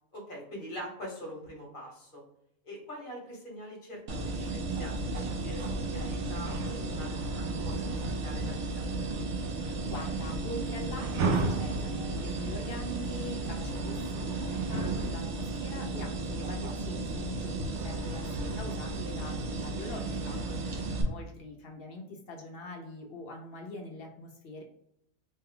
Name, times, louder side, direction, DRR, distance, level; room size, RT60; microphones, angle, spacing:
voice 1, 0.1-2.2 2.6-8.8 20.6-20.8, equal, 40° left, -2 dB, 1.2 m, -44 dB
sound 1, 4.1-21.0, right 3 dB, 60° right, 0.8 m, -33 dB
voice 2, 9.8-20.4 20.9-24.6, left 2 dB, 55° left, 1 dB, 0.7 m, -43 dB
3.2 x 2.2 x 3.5 m, 0.74 s
omnidirectional pair, 1.6 m